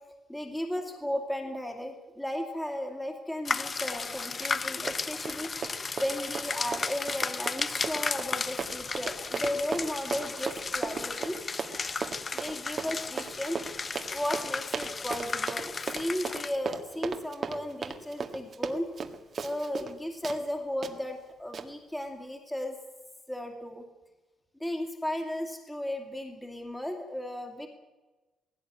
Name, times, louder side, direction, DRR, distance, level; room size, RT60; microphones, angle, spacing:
voice 1, 0.3-5.5 6.0-11.4 12.3-13.6 14.1-18.9 19.4-22.8 23.3-23.8 24.6-27.7, left 1 dB, 5° left, 3 dB, 2.5 m, -35 dB
sound 1, 3.5-16.6, left 4 dB, 25° left, 0.6 m, -34 dB
Run, 4.4-4.6 4.9-20.0 20.2-20.4 20.8-20.9 21.5-21.7, right 5 dB, 35° right, 1.6 m, -36 dB
19.0 x 17.0 x 9.5 m, 1.2 s
cardioid pair, 155°, 0 cm